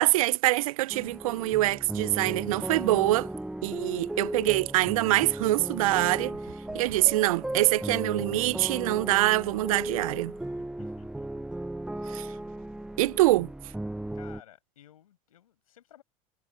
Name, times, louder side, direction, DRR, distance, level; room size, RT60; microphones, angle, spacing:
voice 1, 0.0-3.3 3.6-6.3 6.7-10.3 12.1-12.3 13.0-13.5, right 18 dB, 80° right, 0.6 m, -24 dB
sound 1, 0.9-14.4, right 1 dB, 5° right, 0.5 m, -36 dB
sound 2, 5.8-8.8 9.2-9.6, right 24 dB, 65° right, 3.2 m, -53 dB
voice 2, 10.8-11.3 11.9-12.2 14.1-16.0, left 11 dB, 90° left, 6.2 m, -55 dB
hypercardioid pair, 90°, 18 cm